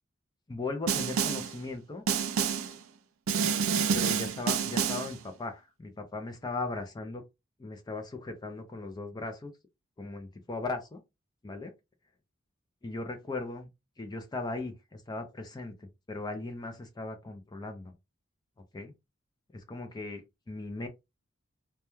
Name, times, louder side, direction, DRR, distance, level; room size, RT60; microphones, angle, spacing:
voice 1, 0.5-2.1 3.9-7.2 7.6-9.5 10.0-11.0 11.4-11.7 12.8-13.7 14.0-17.9 18.7-18.9 19.5-20.9, left 3 dB, 20° left, 0.4 m, -38 dB
Snare drum, 0.9-1.6 2.1-2.8 3.3-5.2, right 6 dB, 80° right, 0.4 m, -28 dB
2.2 x 2.2 x 3.0 m
head